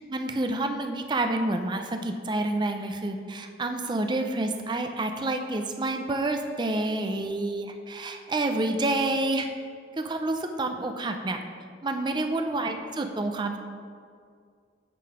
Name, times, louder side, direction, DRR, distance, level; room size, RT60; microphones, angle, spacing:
voice 1, 0.1-9.5 10.0-11.4 11.8-13.6, right 2 dB, 25° right, 5 dB, 0.4 m, -28 dB
8.3 x 3.8 x 4.9 m, 2.1 s
head